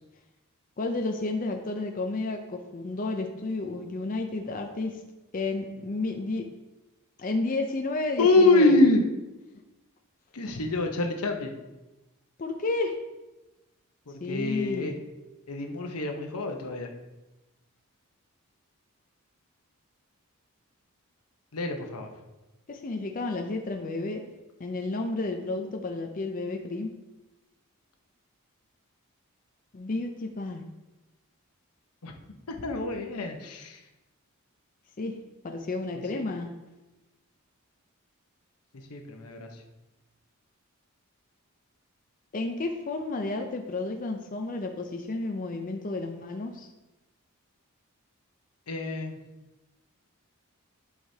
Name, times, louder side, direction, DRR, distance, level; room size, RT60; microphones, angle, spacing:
voice 1, 0.8-5.0 5.3-6.5 7.2-8.7 12.4-13.0 14.2-15.0 22.7-24.2 24.6-26.9 29.7-30.6 35.0-35.1 35.4-36.5 42.3-46.7, left 2 dB, 35° left, 3 dB, 0.5 m, -31 dB
voice 2, 8.2-9.0 10.3-11.5 14.1-14.9 15.5-16.9 21.5-22.1 32.0-32.1 32.5-33.8 36.1-36.2 38.7-39.6 48.7-49.2, left 2 dB, 85° left, 3 dB, 0.9 m, -25 dB
11.0 x 4.8 x 2.8 m, 1.1 s
head